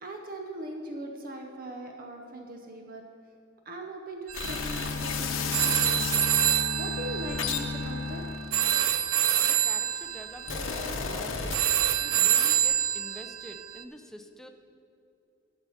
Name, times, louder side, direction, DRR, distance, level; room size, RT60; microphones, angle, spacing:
voice 1, 0.0-3.0 3.7-6.1 6.8-8.2, right 1 dB, 45° right, 3 dB, 0.7 m, -40 dB
sound 1, 4.3-6.3 7.0-9.4 10.1-12.1 12.3-12.7, left 6 dB, 85° left, 0.9 m, -34 dB
sound 2, 4.3-13.8, right 10 dB, 80° right, 0.4 m, -27 dB
sound 3, 4.4-9.4, left 4 dB, 70° left, 0.4 m, -36 dB
voice 2, 9.4-11.7 12.0-14.5, equal, ahead, 6 dB, 0.5 m, -47 dB
11.5 x 6.4 x 5.0 m, 2.6 s
head